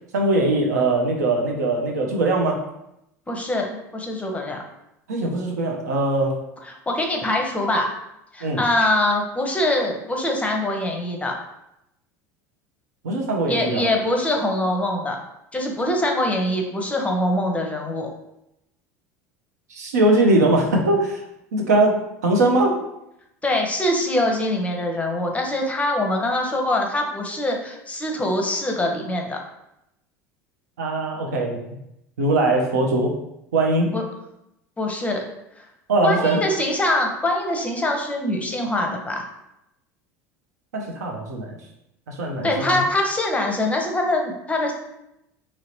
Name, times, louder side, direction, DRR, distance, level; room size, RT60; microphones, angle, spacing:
voice 1, 0.1-2.6 5.1-6.4 8.4-8.6 13.0-13.9 19.7-21.2 21.5-22.8 30.8-31.6 32.2-33.2 33.5-33.9 35.9-36.4 40.7-41.6 42.1-42.8, right 2 dB, 85° right, 1 dB, 0.5 m, -21 dB
voice 2, 3.3-4.6 6.6-7.9 8.3-11.4 13.5-15.2 15.5-18.1 23.4-29.4 33.9-34.0 34.8-35.2 35.6-35.7 36.0-39.2 42.4-44.7, left 1 dB, 15° left, 2 dB, 0.6 m, -23 dB
2.9 x 2.8 x 3.0 m, 0.84 s
hypercardioid pair, 75°, 9 cm